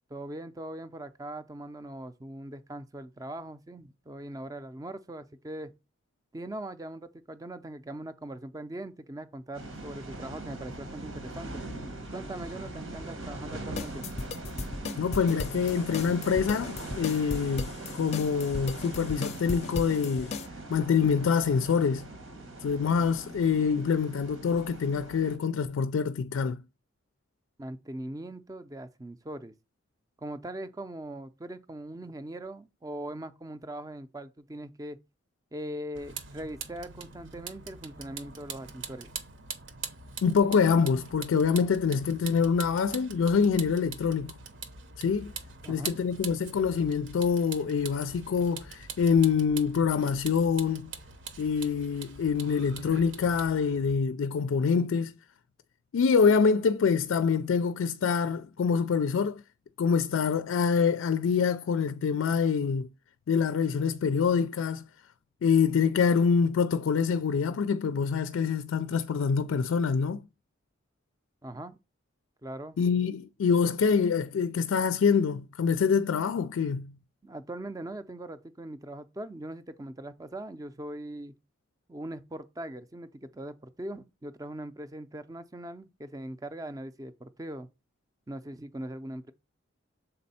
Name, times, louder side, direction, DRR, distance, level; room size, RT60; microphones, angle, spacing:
voice 1, 0.1-5.7 6.3-11.6 12.1-14.1 27.6-29.5 30.2-35.0 35.5-39.1 45.6-46.2 71.4-71.8 72.4-72.8 77.2-81.3 81.9-87.7 88.3-89.3, right 1 dB, 20° right, 0.4 m, -41 dB
sound 1, 9.5-25.4, right 2 dB, 90° right, 1.8 m, -41 dB
sound 2, 13.8-20.5, left 3 dB, 35° left, 0.5 m, -36 dB
voice 2, 15.0-20.4 20.7-22.1 22.6-26.6 40.2-44.3 45.0-45.3 45.7-50.9 51.4-55.1 55.9-59.4 59.8-62.9 63.3-64.8 65.4-70.2 72.8-77.0, left 6 dB, 85° left, 0.4 m, -25 dB
Vehicle, 35.9-53.9, right 5 dB, 65° right, 0.9 m, -43 dB
6.7 x 4.2 x 4.1 m
head